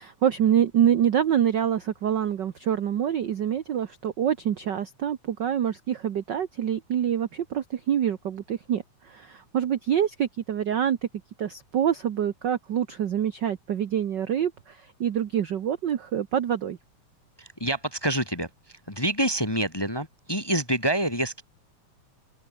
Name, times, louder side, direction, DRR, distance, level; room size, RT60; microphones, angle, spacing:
voice 1, 0.0-11.0 11.4-16.8, right 9 dB, 65° right, 1.1 m, -26 dB
voice 2, 17.4-21.4, right 1 dB, 10° left, 1.4 m, -27 dB
open air
omnidirectional pair, 3.4 m